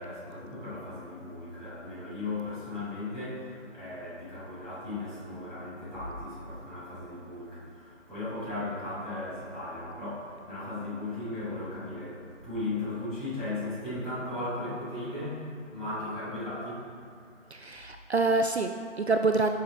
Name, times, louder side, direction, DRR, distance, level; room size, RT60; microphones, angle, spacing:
voice 1, 0.0-17.5, left 2 dB, ahead, -24 dB, 2.1 m, -37 dB
voice 2, 17.5-19.5, right 3 dB, 60° right, 6 dB, 0.5 m, -26 dB
7.9 x 7.4 x 4.3 m, 2.4 s
figure-of-eight pair, 165°, 38 cm